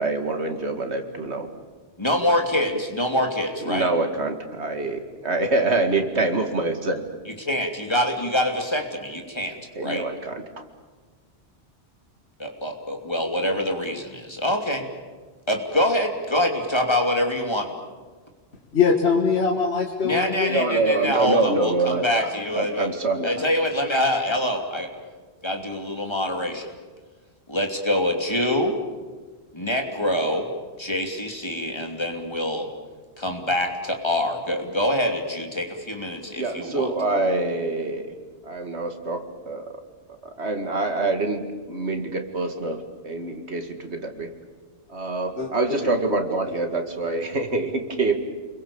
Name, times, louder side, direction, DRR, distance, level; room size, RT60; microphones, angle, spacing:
voice 1, 0.0-1.5 3.6-7.0 9.7-10.4 20.5-23.4 36.4-38.1 38.4-39.7 40.2-44.3 44.9-48.1, right 2 dB, 80° right, 5 dB, 2.5 m, -25 dB
voice 2, 2.0-3.9 7.3-10.0 12.4-14.9 15.5-17.7 20.0-22.9 23.2-24.9 25.4-26.7 27.5-28.8 29.5-30.5 30.8-32.7 33.2-36.9, left 1 dB, 25° left, 3 dB, 3.0 m, -25 dB
voice 3, 18.7-20.6 45.4-45.5 45.8-46.2, left 5 dB, 75° left, 1 dB, 2.0 m, -22 dB
29.0 x 22.5 x 7.1 m, 1.4 s
omnidirectional pair, 1.1 m